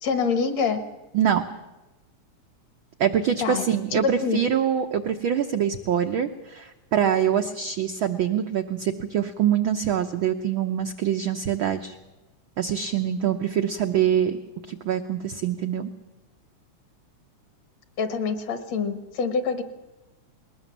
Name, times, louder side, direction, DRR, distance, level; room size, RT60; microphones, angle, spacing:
voice 1, 0.0-0.8 3.4-3.6 3.9-4.4 18.0-19.6, left 5 dB, 65° left, 10 dB, 2.5 m, -25 dB
voice 2, 3.0-11.9 12.6-14.4 14.7-15.9, right 9 dB, 80° right, 6 dB, 1.1 m, -24 dB
20.0 x 19.5 x 7.3 m, 1.1 s
omnidirectional pair, 3.4 m